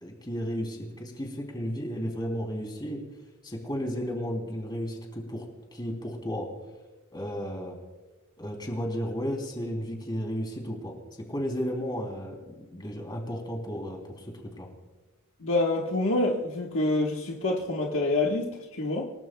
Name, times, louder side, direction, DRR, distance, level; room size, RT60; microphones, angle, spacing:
voice 1, 0.0-3.0 3.4-5.5 5.7-6.5 7.1-7.8 8.4-10.9 11.3-14.7, equal, 20° left, 1 dB, 3.3 m, -33 dB
voice 2, 15.4-19.1, left 2 dB, 65° left, -1 dB, 1.5 m, -27 dB
28.0 x 18.5 x 2.3 m, 1.2 s
head